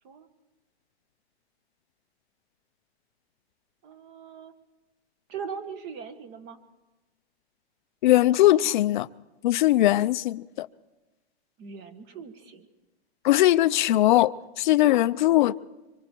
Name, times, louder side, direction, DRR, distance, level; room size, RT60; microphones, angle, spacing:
voice 1, 3.8-4.5 5.3-6.6 11.6-12.7, right 6 dB, 30° right, 1.6 m, -40 dB
voice 2, 8.0-9.1 9.4-10.7 13.2-15.6, left 15 dB, 45° left, 0.6 m, -20 dB
25.0 x 23.5 x 4.5 m
hypercardioid pair, 155°, 34 cm